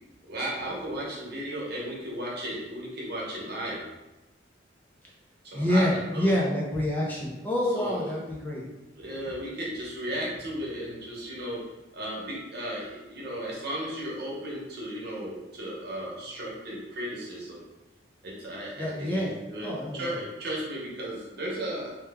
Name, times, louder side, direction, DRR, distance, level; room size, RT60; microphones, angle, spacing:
voice 1, 0.3-3.8 5.4-6.3 7.7-8.2 8.9-11.6 11.9-17.6 18.2-19.7 19.9-21.9, right 1 dB, 60° right, -5 dB, 1.0 m, -35 dB
voice 2, 5.5-8.6 18.8-19.3 19.6-20.0, left 1 dB, 10° left, -4 dB, 0.5 m, -27 dB
3.0 x 2.2 x 3.4 m, 1.0 s
head